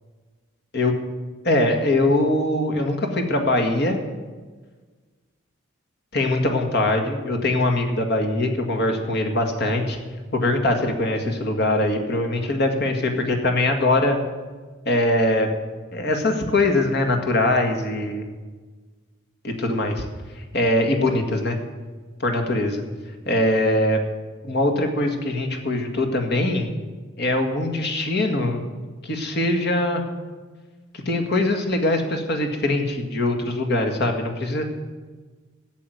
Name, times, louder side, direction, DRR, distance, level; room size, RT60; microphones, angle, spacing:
voice 1, 1.4-4.0 6.1-10.0 10.3-14.2 14.9-15.5 15.9-18.3 19.4-20.0 20.5-21.6 22.2-22.8 23.3-24.0 24.4-26.7 27.2-28.6 29.0-30.0 31.1-34.6, left 1 dB, 50° left, 5 dB, 1.9 m, -22 dB
14.0 x 7.8 x 9.3 m, 1.4 s
head